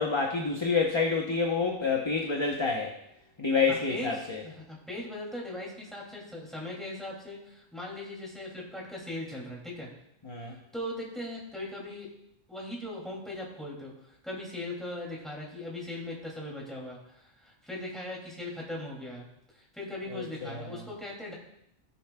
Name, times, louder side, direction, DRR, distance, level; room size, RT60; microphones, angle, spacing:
voice 1, 0.0-2.9 3.4-4.4 10.2-10.5 20.1-20.8, left 4 dB, 25° left, 1 dB, 0.8 m, -28 dB
voice 2, 3.7-4.1 4.4-9.9 10.4-12.1 12.5-19.3 19.5-21.3, left 1 dB, ahead, -4 dB, 2.5 m, -39 dB
16.5 x 7.0 x 2.3 m, 0.77 s
omnidirectional pair, 1.3 m